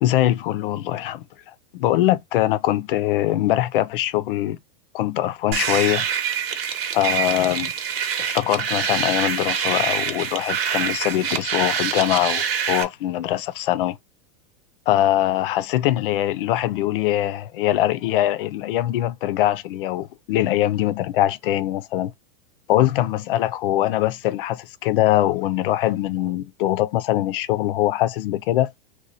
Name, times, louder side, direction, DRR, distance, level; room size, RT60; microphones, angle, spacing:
voice 1, 0.0-4.6 4.9-6.1 6.9-7.7 8.2-14.0 14.9-22.1 22.7-28.7, left 13 dB, 65° left, 0.5 m, -22 dB
sound 1, 5.5-12.8, right 8 dB, 90° right, 1.1 m, -25 dB
3.1 x 2.2 x 4.0 m
supercardioid pair, 160°, 29 cm